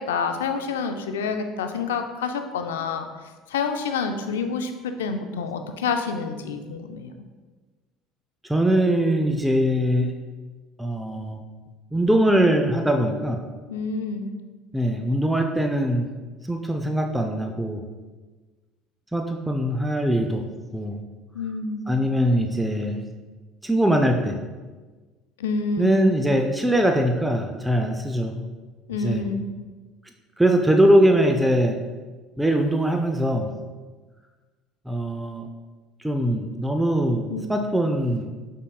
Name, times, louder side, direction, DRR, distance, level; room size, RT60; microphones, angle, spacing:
voice 1, 0.1-3.1 3.5-7.1 13.7-14.3 21.3-21.9 25.4-26.2 28.9-29.4 37.3-37.4, left 5 dB, 90° left, 7 dB, 0.3 m, -28 dB
voice 2, 8.5-10.1 10.8-11.4 11.9-13.4 14.7-16.1 16.5-17.8 19.1-20.4 20.7-21.0 21.9-23.0 23.6-24.4 25.8-28.4 29.0-29.3 30.4-31.8 32.4-33.5 34.9-35.5 36.0-38.3, right 1 dB, 5° right, 3 dB, 0.4 m, -22 dB
5.2 x 3.6 x 2.3 m, 1.3 s
hypercardioid pair, 75°, 0 cm